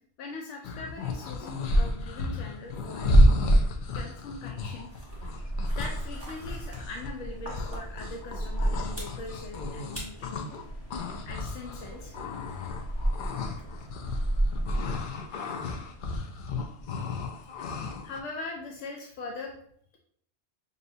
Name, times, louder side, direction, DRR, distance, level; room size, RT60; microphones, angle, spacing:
voice 1, 0.2-3.2 3.9-4.9 5.8-10.5 11.2-12.1 17.4-17.7 18.0-19.5, left 3 dB, 85° left, 1 dB, 0.9 m, -41 dB
sound 1, 0.6-10.6 10.9-18.2, equal, 60° left, 0.5 m, -29 dB
sound 2, 4.9-15.3, right 1 dB, 10° left, 1.1 m, -34 dB
5.4 x 2.7 x 2.6 m, 0.64 s
omnidirectional pair, 1.2 m